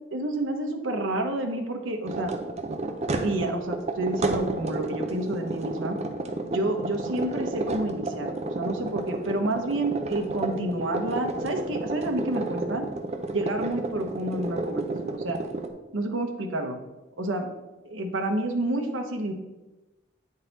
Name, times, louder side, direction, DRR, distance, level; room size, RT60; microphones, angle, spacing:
voice 1, 0.1-2.3 3.2-6.0 6.5-12.8 13.3-15.4 15.9-16.8 17.2-17.5 17.8-19.3, right 1 dB, 85° right, 3 dB, 1.0 m, -29 dB
sound 1, 2.1-15.7, right 2 dB, 35° right, 0.6 m, -31 dB
9.0 x 4.0 x 4.0 m, 1.1 s
head